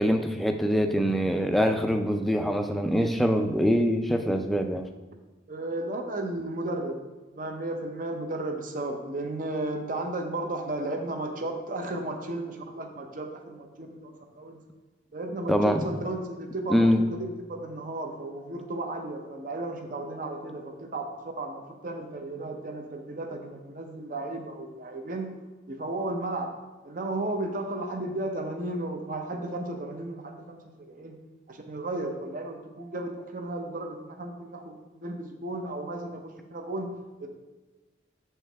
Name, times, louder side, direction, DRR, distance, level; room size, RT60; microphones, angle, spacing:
voice 1, 0.0-4.9 15.5-15.8 16.7-17.0, equal, ahead, 5 dB, 0.4 m, -24 dB
voice 2, 5.5-7.0 7.3-14.6 15.1-21.1 21.4-25.3 25.7-26.5 26.8-30.6 30.9-31.2 31.5-36.9 37.2-37.3, right 2 dB, 50° right, 4 dB, 0.7 m, -34 dB
7.2 x 4.5 x 3.4 m, 1.2 s
head